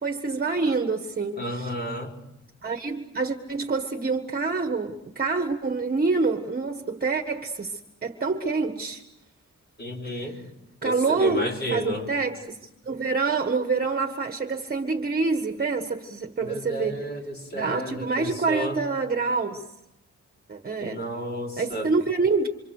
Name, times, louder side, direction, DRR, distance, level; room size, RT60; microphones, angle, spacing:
voice 1, 0.0-1.7 2.6-9.0 10.2-10.3 10.8-17.0 17.5-19.6 20.5-21.0 21.6-22.5, right 4 dB, 30° right, 1.6 m, -27 dB
voice 2, 1.4-2.1 9.8-10.4 10.8-12.1 16.4-18.8 20.8-21.9, right 1 dB, 35° left, 4.9 m, -32 dB
28.5 x 26.5 x 6.6 m
wide cardioid pair, 160°, 29 cm